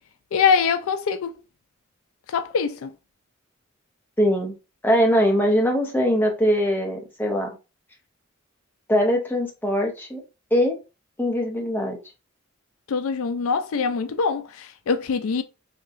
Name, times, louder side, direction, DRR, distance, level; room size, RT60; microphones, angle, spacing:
voice 1, 0.3-1.3 2.3-2.9 12.9-15.4, left 6 dB, 80° left, 0.4 m, -23 dB
voice 2, 4.2-4.5 4.8-7.5 8.9-10.2 10.5-10.8 11.2-12.0, equal, 10° left, 0.7 m, -21 dB
3.7 x 2.8 x 2.4 m
head